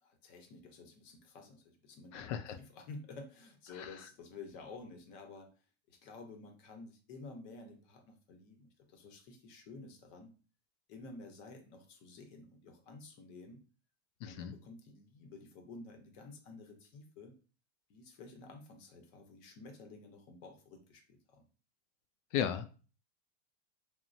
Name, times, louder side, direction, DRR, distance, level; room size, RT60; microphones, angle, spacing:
voice 1, 0.0-5.5 5.9-10.3 10.9-13.6 14.2-17.3 17.9-21.4, left 3 dB, 50° left, 4 dB, 0.8 m, -52 dB
voice 2, 2.1-2.6 3.7-3.9 14.2-14.6 22.3-22.8, left 9 dB, 75° left, 10 dB, 0.5 m, -36 dB
3.1 x 2.1 x 2.5 m, 0.36 s
supercardioid pair, 140°, 37 cm